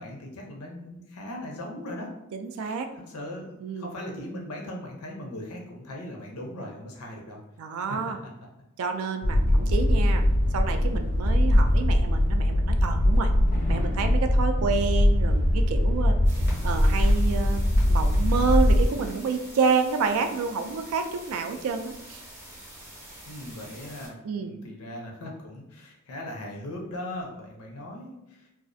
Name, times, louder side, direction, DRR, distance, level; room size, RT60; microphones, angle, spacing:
voice 1, 0.0-2.1 2.6-2.8 3.1-7.4 7.9-8.1 23.2-28.5, left 1 dB, 85° left, 0 dB, 0.6 m, -39 dB
voice 2, 2.3-2.9 3.6-3.9 7.6-8.2 8.8-10.2 10.5-13.3 13.7-16.2 16.6-17.6 17.9-22.2 24.2-24.5, right 5 dB, 70° right, 7 dB, 0.3 m, -29 dB
sound 1, 9.2-18.9, left 1 dB, 40° left, 0.3 m, -21 dB
sound 2, 16.2-24.1, right 1 dB, 10° right, 0.6 m, -46 dB
2.4 x 2.0 x 2.5 m, 0.94 s
head